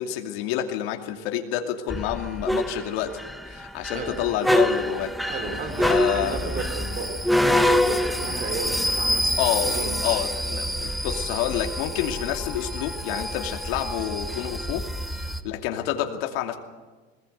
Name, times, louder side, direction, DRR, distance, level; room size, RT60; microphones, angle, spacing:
voice 1, 0.0-3.2 3.5-5.1 5.8-6.4 9.4-9.7 10.0-14.9 15.1-16.6, left 11 dB, 80° left, 4 dB, 2.7 m, -28 dB
sound 1, 1.9-15.4, equal, ahead, 0.6 m, -26 dB
voice 2, 5.2-7.2 7.5-10.2, right 4 dB, 25° right, 6 dB, 3.0 m, -34 dB
21.5 x 20.0 x 8.1 m, 1.3 s
cardioid pair, 180°, 30 cm